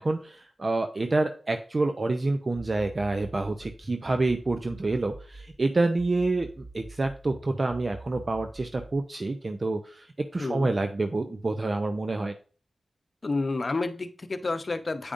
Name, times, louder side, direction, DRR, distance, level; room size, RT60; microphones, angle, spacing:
voice 1, 0.0-6.5 6.7-10.1 10.3-12.3, right 2 dB, 45° right, 6 dB, 0.5 m, -27 dB
sound 1, 2.6-5.6 6.0-9.0, right 2 dB, 15° right, 0.9 m, -45 dB
voice 2, 10.4-10.7 13.2-15.1, left 3 dB, 45° left, 9 dB, 0.7 m, -30 dB
8.5 x 5.0 x 2.6 m, 0.40 s
cardioid pair, 50°, 0 cm